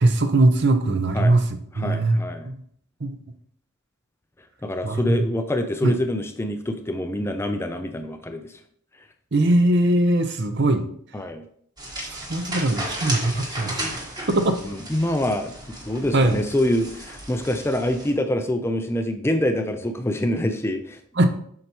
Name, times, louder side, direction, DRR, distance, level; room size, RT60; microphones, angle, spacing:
voice 1, 0.0-1.4 1.8-2.5 3.0-3.2 4.8-5.3 5.8-5.9 9.3-10.8 12.1-13.9 14.3-14.6 16.1-16.4 21.2-21.3, right 2 dB, 50° right, 8 dB, 0.7 m, -20 dB
voice 2, 1.7-2.5 4.6-8.5 11.1-11.4 14.7-21.3, left 1 dB, 10° left, 7 dB, 0.4 m, -26 dB
sound 1, 11.8-18.1, right 1 dB, 20° right, 1.3 m, -34 dB
7.6 x 5.6 x 2.9 m, 0.62 s
head